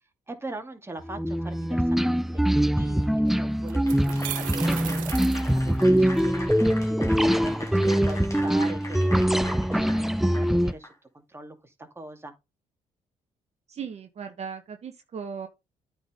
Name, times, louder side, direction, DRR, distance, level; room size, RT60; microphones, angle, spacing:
voice 1, 0.3-5.3 5.5-10.9 11.1-12.3, right 2 dB, 20° right, 2.3 m, -41 dB
sound 1, 1.1-10.7, equal, ahead, 0.5 m, -23 dB
sound 2, 3.0-3.1 3.7-6.2, right 15 dB, 85° right, 0.7 m, -36 dB
Applause / Crowd, 3.7-10.9, left 1 dB, 20° left, 3.1 m, -42 dB
voice 2, 13.7-15.5, right 6 dB, 55° right, 1.2 m, -37 dB
9.0 x 3.9 x 5.1 m
supercardioid pair, 60°, 13 cm